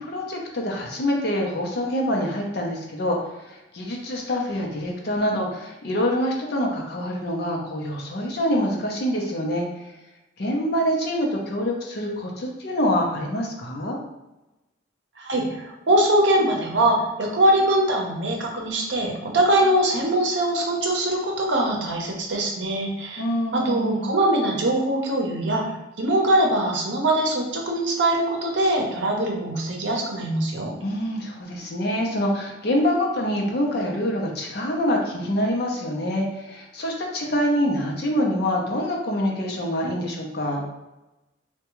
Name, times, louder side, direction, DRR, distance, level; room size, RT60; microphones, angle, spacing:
voice 1, 0.0-3.2 3.5-9.7 10.4-14.0 23.2-24.1 30.8-40.6, equal, 55° left, 0 dB, 0.6 m, -25 dB
voice 2, 15.2-23.2 23.5-25.6 26.0-30.7, right 1 dB, 65° right, 0 dB, 0.7 m, -22 dB
3.4 x 2.2 x 3.0 m, 0.99 s
head